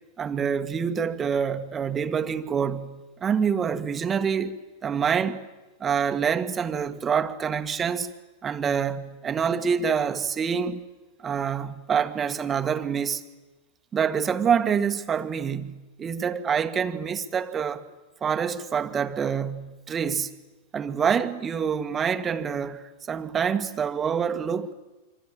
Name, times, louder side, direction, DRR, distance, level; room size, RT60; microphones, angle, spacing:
voice 1, 0.2-5.4 5.8-8.1 8.4-10.8 11.2-13.2 13.9-17.9 18.2-20.3 20.7-24.7, right 7 dB, 25° right, 1.7 m, -26 dB
25.5 x 25.5 x 8.9 m
figure-of-eight pair, 95°, 0 cm